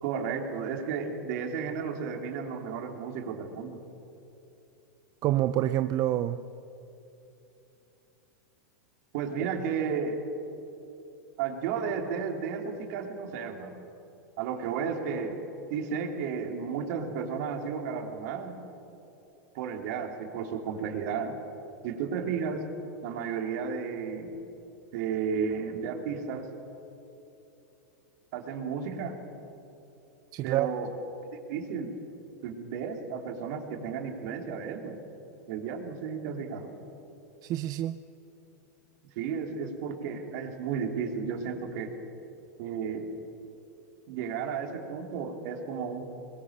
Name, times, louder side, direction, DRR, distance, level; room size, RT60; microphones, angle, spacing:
voice 1, 0.0-3.8 9.1-10.2 11.4-13.7 14.4-15.4 15.7-18.6 19.5-21.3 21.8-22.6 23.0-24.3 24.9-26.5 28.3-29.2 30.4-30.9 31.5-31.9 32.4-35.0 35.5-36.7 39.1-41.9 42.6-43.1 44.1-46.1, right 6 dB, 60° right, 3 dB, 3.5 m, -33 dB
voice 2, 5.2-6.4 30.3-30.7 37.4-38.0, right 13 dB, 40° right, 11 dB, 0.7 m, -27 dB
23.5 x 21.5 x 6.8 m, 2.9 s
hypercardioid pair, 125°, 10 cm